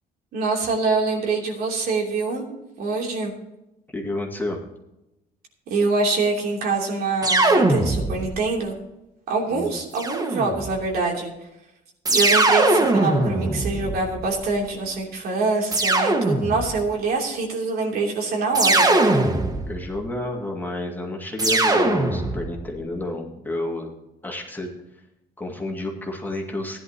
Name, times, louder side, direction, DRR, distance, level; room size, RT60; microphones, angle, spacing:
voice 1, 0.3-2.5 2.8-3.3 5.7-8.7 9.3-11.3 12.1-18.9, right 3 dB, 65° right, 0 dB, 3.1 m, -24 dB
voice 2, 3.9-4.6 9.5-9.7 19.7-23.9 24.2-24.8 25.4-26.8, left 2 dB, 10° left, 0 dB, 2.2 m, -30 dB
sound 1, 7.2-8.4 9.9-10.8 12.0-14.4 15.7-16.8 18.5-19.9 21.4-22.6, right 2 dB, 20° right, 1.6 m, -21 dB
15.5 x 11.0 x 2.9 m, 0.91 s
cardioid pair, 110°, 17 cm